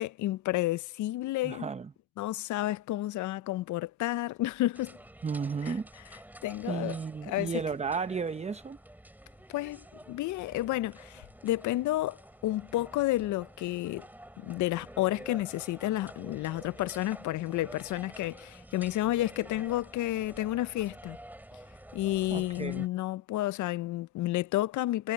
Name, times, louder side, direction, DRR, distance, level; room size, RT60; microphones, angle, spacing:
voice 1, 0.0-1.7 2.2-5.0 5.6-5.8 6.1-7.6 9.5-14.1 14.4-21.2 21.9-25.1, left 16 dB, 75° left, 0.5 m, -31 dB
voice 2, 1.4-1.9 5.2-5.9 6.7-8.8 22.3-22.8, right 5 dB, 20° right, 0.6 m, -33 dB
sound 1, 4.7-22.9, right 1 dB, 5° right, 3.8 m, -50 dB
cardioid pair, 90°, 30 cm